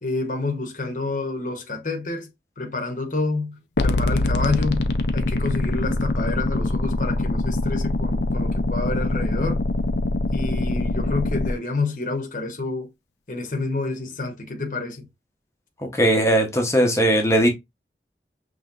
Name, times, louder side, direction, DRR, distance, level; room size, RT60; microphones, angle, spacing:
voice 1, 0.0-2.3 2.6-3.6 3.8-4.9 5.1-9.6 10.3-12.9 13.3-15.1, left 3 dB, 45° left, 1.0 m, -28 dB
sound 1, 3.8-11.5, left 2 dB, 80° left, 0.6 m, -23 dB
voice 2, 15.8-17.5, right 1 dB, 15° left, 0.9 m, -19 dB
5.4 x 3.4 x 2.5 m
head